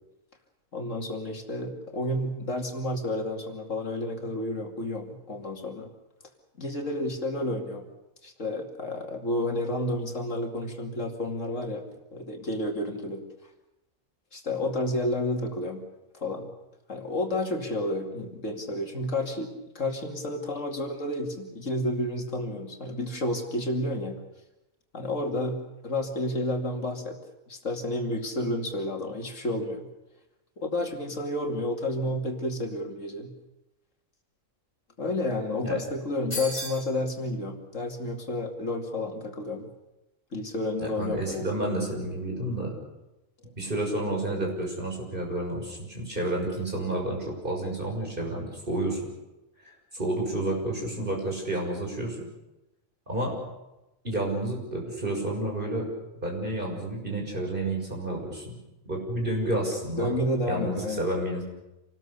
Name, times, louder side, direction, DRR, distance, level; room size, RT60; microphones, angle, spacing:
voice 1, 0.7-5.9 6.6-7.9 8.2-11.8 12.1-13.2 14.3-15.8 16.1-16.5 16.9-19.5 19.7-24.2 24.9-27.2 27.5-29.9 30.6-33.3 35.0-39.7 40.3-41.5 60.0-61.1, left 1 dB, 65° left, 3 dB, 2.8 m, -30 dB
sound 1, 36.3-36.9, left 1 dB, 30° left, 5.5 m, -34 dB
voice 2, 40.8-42.7 43.6-49.0 49.9-52.3 53.1-53.3 54.0-55.9 56.2-58.6 58.8-60.1 60.5-61.4, right 1 dB, 40° right, 0 dB, 6.5 m, -30 dB
27.5 x 19.5 x 6.8 m, 0.99 s
omnidirectional pair, 1.4 m